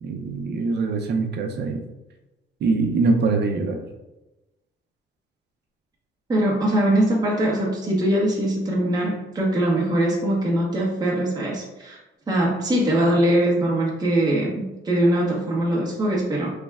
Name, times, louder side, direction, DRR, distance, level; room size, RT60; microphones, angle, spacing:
voice 1, 0.0-1.8 2.6-3.8, right 3 dB, 60° right, 3 dB, 0.6 m, -23 dB
voice 2, 6.3-12.0 12.3-16.5, right 1 dB, 20° right, -4 dB, 0.7 m, -22 dB
3.3 x 2.1 x 3.4 m, 1.0 s
cardioid pair, 90°, 20 cm